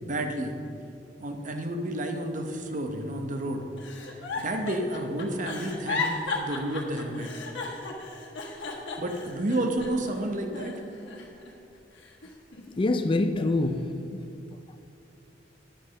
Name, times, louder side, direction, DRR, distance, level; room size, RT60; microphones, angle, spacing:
voice 1, 0.0-0.5 1.2-3.6 4.4-7.3 9.0-10.7, right 1 dB, 45° right, 0.9 m, -30 dB
Giggle, 3.8-10.1 10.5-11.5 12.0-13.1 13.6-13.9, left 3 dB, 75° left, 1.4 m, -35 dB
voice 2, 12.8-14.1, left 2 dB, 30° left, 0.4 m, -25 dB
10.0 x 5.5 x 6.4 m
head